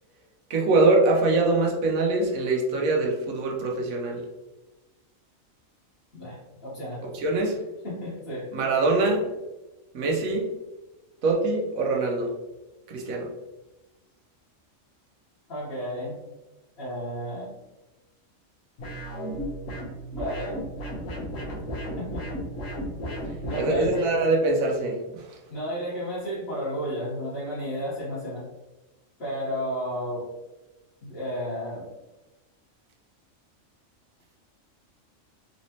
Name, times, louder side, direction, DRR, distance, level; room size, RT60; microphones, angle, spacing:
voice 1, 0.5-4.2 7.1-7.5 8.5-9.3 9.9-10.5 11.2-12.3 12.9-13.3 23.5-25.2, right 2 dB, 85° right, 0 dB, 1.2 m, -23 dB
voice 2, 6.1-7.0 7.8-8.5 15.5-16.2 16.8-17.5 20.1-20.7 22.0-22.2 23.4-23.9 25.5-28.4 29.2-30.3 31.0-31.8, equal, 50° left, -11 dB, 1.5 m, -32 dB
sound 1, 18.8-24.1, equal, 70° left, 1.3 m, -34 dB
3.7 x 3.1 x 2.8 m, 1.1 s
omnidirectional pair, 1.4 m